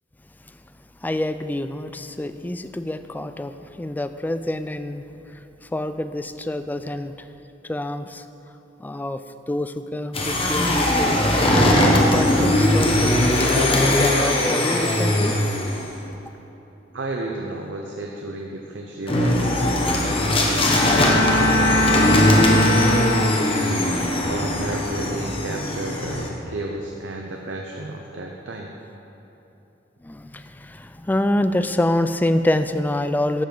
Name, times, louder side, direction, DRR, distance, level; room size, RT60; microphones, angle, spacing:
voice 1, 1.0-5.0 5.7-7.1 7.6-8.2 8.8-9.2 9.5-11.4 11.9-15.4 30.0-33.4, left 1 dB, 10° left, 10 dB, 0.3 m, -26 dB
sound 1, 10.1-15.9 19.1-26.3, left 1 dB, 30° left, 1.1 m, -20 dB
voice 2, 16.9-20.8 21.4-23.5 24.1-28.7, right 2 dB, 75° right, 1 dB, 0.8 m, -33 dB
Bowed string instrument, 20.5-23.7, left 1 dB, 80° left, 1.7 m, -22 dB
11.5 x 6.0 x 7.0 m, 3.0 s
head